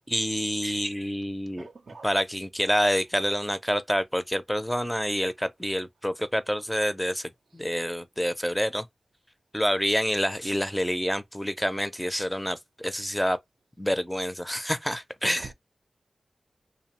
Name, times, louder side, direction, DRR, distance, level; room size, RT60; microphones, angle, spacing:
voice 1, 0.1-1.7 2.0-8.8 9.5-13.4 13.8-15.5, equal, ahead, 0.4 m, -27 dB
voice 2, 1.6-2.1 15.4-15.5, right 4 dB, 75° right, 0.4 m, -43 dB
2.6 x 2.0 x 2.9 m
cardioid pair, 60°, 0 cm